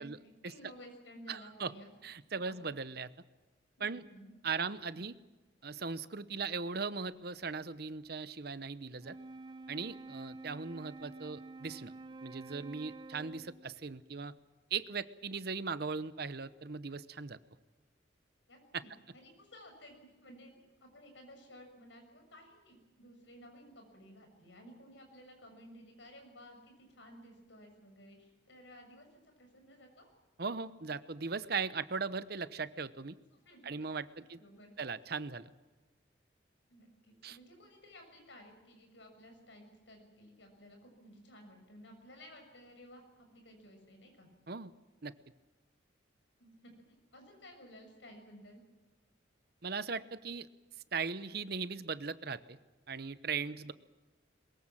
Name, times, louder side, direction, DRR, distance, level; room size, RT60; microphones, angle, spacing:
voice 1, 0.0-1.9 2.3-2.6 3.8-4.3 18.5-30.1 33.1-33.7 34.1-34.7 36.7-44.3 46.4-48.6 53.4-53.6, equal, 70° left, 4 dB, 6.8 m, -55 dB
voice 2, 1.3-1.7 2.0-3.1 3.8-4.0 4.4-5.2 5.6-9.2 9.7-11.9 12.2-14.3 14.7-17.4 18.7-18.8 30.4-33.2 33.6-34.4 34.8-35.5 37.2-37.4 44.5-44.7 45.0-45.1 49.6-50.5 50.9-52.6 52.9-53.7, right 5 dB, 55° right, 14 dB, 0.9 m, -38 dB
Wind instrument woodwind instrument, 8.9-13.7, right 3 dB, 25° right, 0.7 m, -49 dB
22.5 x 21.5 x 7.5 m, 1.2 s
head